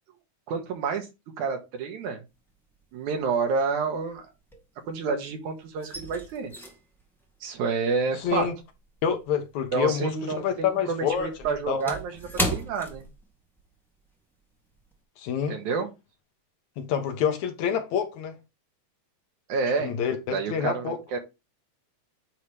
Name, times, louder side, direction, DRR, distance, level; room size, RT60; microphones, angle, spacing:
voice 1, 0.5-1.1 1.4-2.2 2.9-4.2 4.9-6.5 7.4-8.5 9.7-12.1 12.5-13.1 15.5-15.9 19.5-19.9 20.3-21.2, right 5 dB, 80° right, 2.8 m, -29 dB
sound 1, 2.4-2.9 3.2-5.2 5.4-10.1 10.4-13.7 14.0-14.2 14.7-15.0, equal, ahead, 0.9 m, -36 dB
voice 2, 8.1-8.6 9.0-11.3 11.7-12.0 15.2-15.6 16.8-18.4 19.8-21.0, left 8 dB, 75° left, 2.4 m, -27 dB
9.2 x 3.1 x 5.0 m
omnidirectional pair, 3.4 m